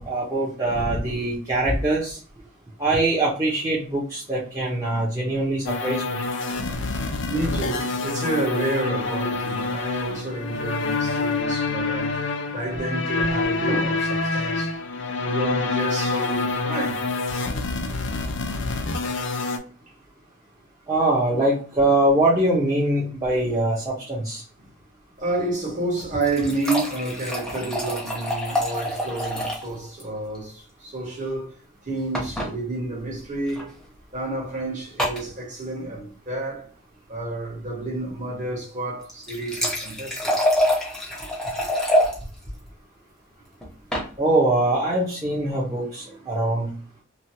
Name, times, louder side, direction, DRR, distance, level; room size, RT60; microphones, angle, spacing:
voice 1, 0.0-2.2 2.8-6.2 20.9-24.4 44.2-46.7, right 1 dB, 15° right, 0.9 m, -23 dB
sound 1, 5.6-19.6, left 3 dB, 60° left, 0.5 m, -27 dB
voice 2, 7.3-14.8 15.0-17.0 17.8-18.3 19.0-19.1 21.3-21.5 21.7-21.9 25.2-31.6 31.8-33.7 34.1-36.7 37.1-40.3 41.0-41.3 41.6-41.7 46.0-46.2 46.5-46.6, right 2 dB, 35° right, 1.4 m, -30 dB
sound 2, 26.0-29.7 30.0-30.1 30.3-30.4 32.1-32.5 33.5-33.6 35.0-35.3 39.0-42.1 43.6-44.1, equal, 5° left, 0.9 m, -25 dB
3.1 x 2.3 x 2.8 m
head